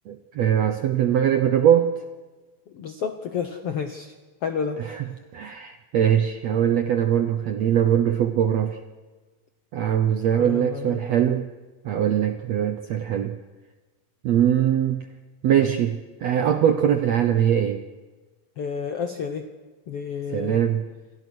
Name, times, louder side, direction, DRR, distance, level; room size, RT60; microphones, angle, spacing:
voice 1, 0.1-1.9 4.8-8.8 9.7-11.5 11.8-13.3 14.2-15.1 15.4-17.8 20.3-20.8, right 9 dB, 75° right, 9 dB, 1.5 m, -22 dB
voice 2, 2.7-4.1 4.4-4.8 10.4-11.0 18.6-19.5 19.9-20.6, left 6 dB, 70° left, 7 dB, 1.4 m, -30 dB
29.5 x 26.5 x 6.2 m, 1.3 s
omnidirectional pair, 4.3 m